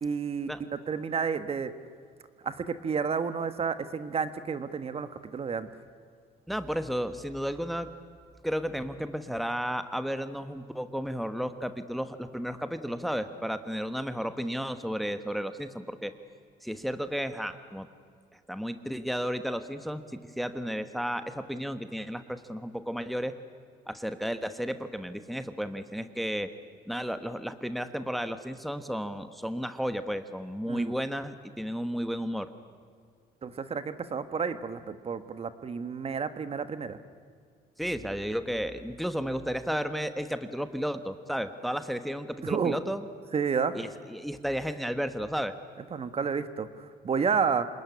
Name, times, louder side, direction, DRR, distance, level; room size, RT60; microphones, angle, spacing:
voice 1, 0.0-1.7 2.4-5.7 30.7-30.8 33.4-37.0 42.4-42.7 43.3-43.8 45.9-47.7, right 6 dB, 35° right, 11 dB, 1.4 m, -30 dB
voice 2, 6.5-7.9 8.4-16.1 16.6-17.9 18.5-20.0 20.4-23.3 23.9-26.5 26.9-32.5 37.8-43.1 43.7-45.5, equal, ahead, 10 dB, 1.2 m, -33 dB
27.0 x 20.0 x 9.9 m, 2.1 s
cardioid pair, 110°, 17 cm